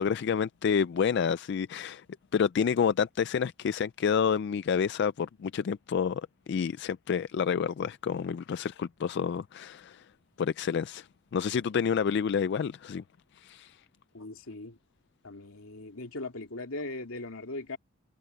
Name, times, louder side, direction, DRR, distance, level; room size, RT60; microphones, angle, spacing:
voice 1, 0.0-2.0 2.3-10.0 10.4-11.1 11.3-13.0 13.4-13.8, left 6 dB, 55° left, 0.3 m, -29 dB
voice 2, 14.1-14.8 15.2-17.8, left 2 dB, 85° left, 2.6 m, -39 dB
head